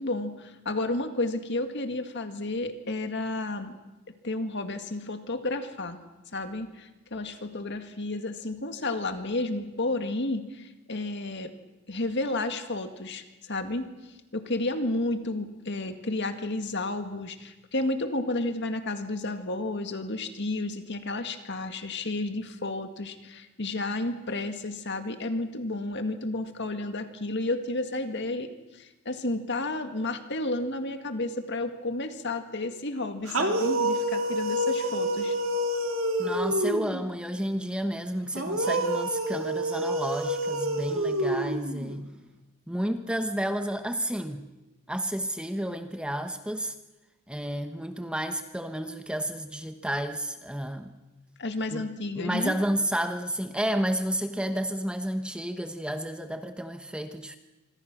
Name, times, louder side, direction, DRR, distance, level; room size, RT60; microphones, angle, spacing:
voice 1, 0.0-3.8 4.1-6.0 6.3-11.5 11.9-13.9 14.3-35.4 51.4-52.6, left 2 dB, 55° left, 7 dB, 2.0 m, -32 dB
sound 1, 33.3-37.0 38.3-42.0, right 1 dB, 65° right, 2.6 m, -28 dB
voice 2, 36.2-42.1 42.7-44.4 44.9-46.7 47.3-50.9 51.7-51.9 52.2-57.4, right 1 dB, 5° right, 7 dB, 1.0 m, -31 dB
26.0 x 25.5 x 6.2 m, 1.1 s
head